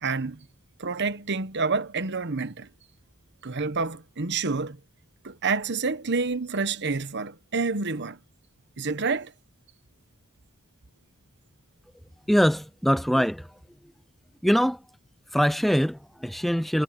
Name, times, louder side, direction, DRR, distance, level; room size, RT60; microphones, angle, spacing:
voice 1, 0.0-0.5 0.8-2.7 3.4-4.8 5.2-8.2 8.8-9.3, right 4 dB, 55° right, 1.1 m, -28 dB
voice 2, 12.3-13.6 14.4-14.8 15.3-16.8, equal, ahead, 0.3 m, -23 dB
head